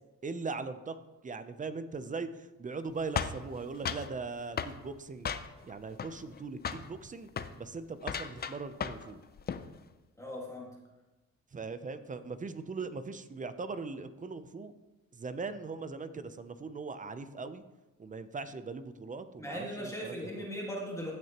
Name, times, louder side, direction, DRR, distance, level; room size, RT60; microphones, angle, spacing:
voice 1, 0.2-1.0 1.2-5.3 5.6-7.3 7.6-9.2 11.5-14.7 15.1-17.6 18.0-20.5, right 4 dB, 25° right, 11 dB, 0.6 m, -40 dB
sound 1, 3.2-4.1 4.6-4.8 5.2-5.7 6.0-6.4 6.6-6.9 7.3-7.5 8.0-9.1 9.4-9.7, left 7 dB, 30° left, 0.5 m, -35 dB
voice 2, 10.2-10.7 19.4-21.1, equal, 10° left, -3 dB, 1.7 m, -38 dB
15.0 x 6.5 x 2.9 m, 1.1 s
cardioid pair, 110°, 31 cm